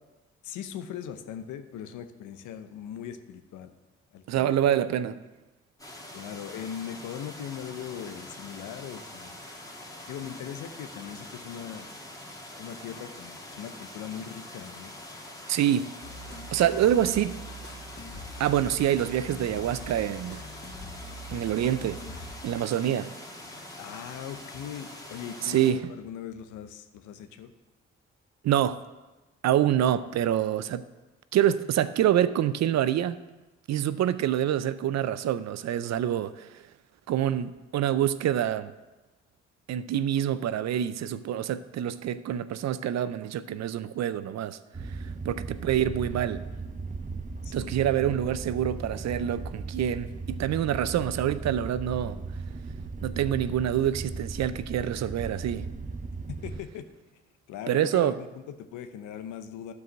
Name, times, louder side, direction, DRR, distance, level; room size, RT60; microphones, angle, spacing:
voice 1, 0.4-3.7 4.1-4.6 6.1-9.4 10.1-11.9 12.6-15.0 23.8-27.5 47.4-47.8 56.4-56.8 57.5-59.7, left 9 dB, 80° left, 9 dB, 0.8 m, -40 dB
voice 2, 4.3-5.2 15.5-15.9 16.5-17.4 18.4-20.4 21.3-22.0 22.4-23.1 25.4-25.8 28.4-28.8 29.4-30.8 31.3-33.2 33.7-36.6 37.1-38.7 39.7-44.6 44.9-45.0 45.2-46.4 47.5-52.2 53.0-55.7 57.7-58.2, right 11 dB, 60° right, 15 dB, 0.6 m, -26 dB
sound 1, 5.8-25.7, left 1 dB, 10° left, 2.4 m, -44 dB
sound 2, 16.0-22.8, equal, 35° left, 2.4 m, -43 dB
sound 3, 44.7-56.6, right 4 dB, 25° right, 0.9 m, -37 dB
11.5 x 4.8 x 6.1 m, 1.1 s
hypercardioid pair, 45°, 30 cm